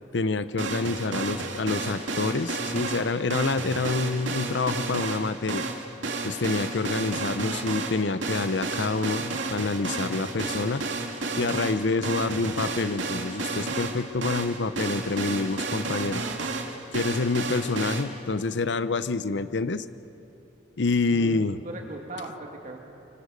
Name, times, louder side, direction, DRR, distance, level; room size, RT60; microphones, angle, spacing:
voice 1, 0.1-5.6 6.2-10.9 11.4-16.2 16.9-19.8 20.8-21.6, left 3 dB, 70° left, 13 dB, 0.7 m, -27 dB
sound 1, 0.6-18.0, right 3 dB, 85° right, 2.4 m, -32 dB
voice 2, 21.1-22.8, right 2 dB, 45° right, 1 dB, 2.7 m, -38 dB
29.0 x 24.0 x 6.7 m, 2.9 s
head